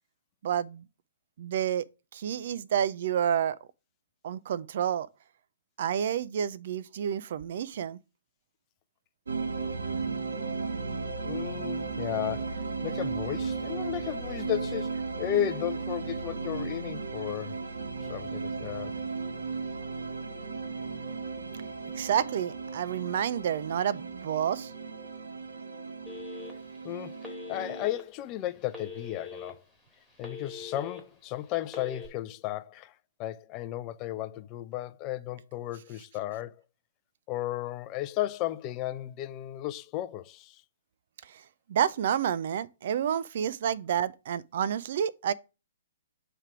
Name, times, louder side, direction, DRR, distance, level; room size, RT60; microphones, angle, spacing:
voice 1, 0.4-0.8 1.4-1.9 2.1-3.6 4.2-5.1 5.8-8.0 22.0-24.7 41.2-41.4 41.7-45.3, right 9 dB, 55° right, 0.4 m, -29 dB
sound 1, 9.3-27.9, right 4 dB, 80° right, 0.9 m, -35 dB
voice 2, 11.2-17.6 18.0-19.0 26.8-27.2 27.5-29.6 30.2-32.9 33.2-36.6 37.3-40.6, left 13 dB, 30° left, 0.4 m, -34 dB
Telephone, 26.1-26.8 27.2-28.0 28.7-29.5 29.9-31.0 31.6-32.1, left 5 dB, ahead, 1.8 m, -42 dB
7.2 x 3.4 x 4.8 m
figure-of-eight pair, 125°, 0 cm